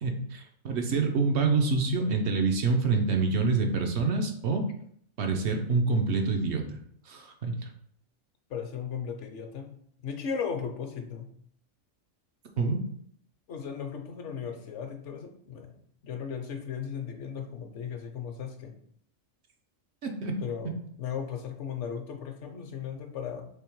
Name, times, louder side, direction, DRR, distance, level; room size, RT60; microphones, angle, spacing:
voice 1, 0.0-4.6 5.2-6.8 7.1-7.5 12.6-12.8 20.0-20.3, right 4 dB, 65° right, 4 dB, 0.9 m, -26 dB
voice 2, 8.5-9.7 10.0-11.3 13.5-15.7 16.0-18.7 20.4-23.5, left 7 dB, 65° left, 4 dB, 1.0 m, -36 dB
3.5 x 3.3 x 4.5 m, 0.65 s
omnidirectional pair, 1.3 m